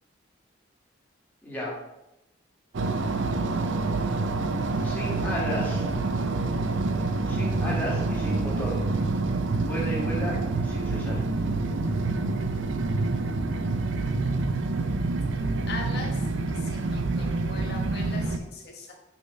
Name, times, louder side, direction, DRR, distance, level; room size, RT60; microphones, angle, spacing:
voice 1, 1.4-1.7 4.8-5.9 7.3-8.8 9.6-10.4 10.6-11.2, equal, 10° left, -5 dB, 1.8 m, -33 dB
sound 1, 2.7-18.4, right 3 dB, 75° right, 0.6 m, -27 dB
voice 2, 15.3-16.2 16.5-18.9, left 3 dB, 55° left, 0 dB, 1.4 m, -40 dB
5.7 x 4.2 x 5.3 m, 0.92 s
head